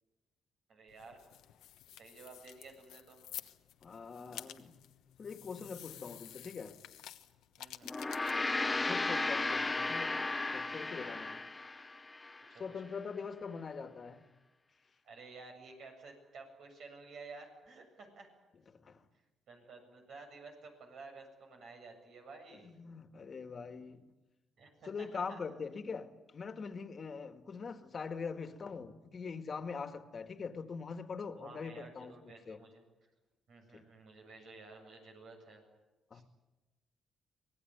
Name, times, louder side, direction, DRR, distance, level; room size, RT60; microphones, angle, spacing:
voice 1, 0.7-1.2 1.9-3.2 7.6-7.9 11.3-11.4 12.5-12.9 15.0-18.3 19.5-22.7 24.6-25.4 31.3-32.8 33.5-35.6 36.1-36.2, right 3 dB, 70° right, 7.7 m, -53 dB
sound 1, 0.9-10.1, left 12 dB, 85° left, 1.1 m, -51 dB
voice 2, 3.8-4.8 5.2-6.8 8.8-10.2 10.5-11.4 12.6-14.2 18.7-19.0 22.6-24.1 24.8-32.6 33.7-33.8 36.1-36.2, left 5 dB, 45° left, 2.0 m, -43 dB
Gong, 7.8-12.5, left 3 dB, 20° left, 0.7 m, -35 dB
25.0 x 18.5 x 9.5 m
cardioid pair, 90°, 0 cm